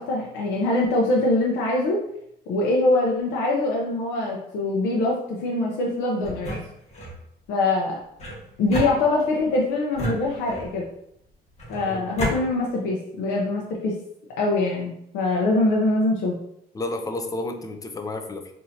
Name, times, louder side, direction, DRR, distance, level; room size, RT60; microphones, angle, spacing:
voice 1, 0.0-2.0 2.5-6.5 7.5-8.0 8.6-10.9 11.7-13.9 14.4-16.4, left 2 dB, 90° left, -3 dB, 0.7 m, -23 dB
sound 1, 6.2-7.2 8.2-9.4 9.9-10.8 11.6-12.4, equal, 40° left, 1.4 m, -31 dB
voice 2, 11.9-12.4 16.7-18.5, left 2 dB, 20° left, 6 dB, 0.4 m, -32 dB
4.3 x 2.7 x 2.7 m, 0.75 s
cardioid pair, 110°, 17 cm